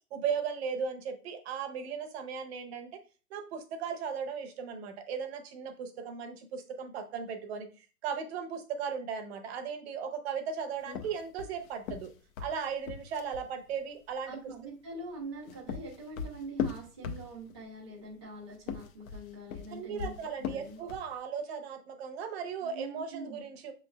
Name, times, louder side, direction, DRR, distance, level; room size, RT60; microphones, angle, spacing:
voice 1, 0.1-3.0 3.3-12.1 12.4-14.4 19.7-23.7, right 6 dB, 40° right, 7 dB, 0.8 m, -37 dB
sound 1, 10.9-13.5 15.2-17.6 18.5-21.1, left 7 dB, 60° left, 0.7 m, -38 dB
voice 2, 14.3-20.1 20.4-20.8 22.6-23.4, right 2 dB, 20° right, -6 dB, 0.3 m, -44 dB
6.0 x 3.1 x 2.3 m, 0.35 s
hypercardioid pair, 135°, 48 cm